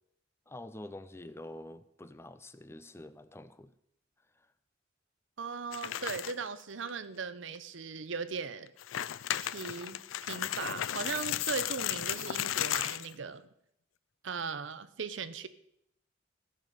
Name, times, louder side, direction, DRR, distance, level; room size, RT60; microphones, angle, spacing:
voice 1, 0.5-3.7 4.4-4.5, left 1 dB, 15° left, 13 dB, 0.5 m, -47 dB
voice 2, 5.4-8.7 9.4-13.5 14.2-15.5, right 5 dB, 70° right, 14 dB, 0.7 m, -38 dB
sound 1, 5.7-6.5 6.9-7.0 7.5-7.6 8.7-13.1, left 12 dB, 85° left, 0.4 m, -34 dB
16.0 x 5.3 x 6.7 m, 0.76 s
head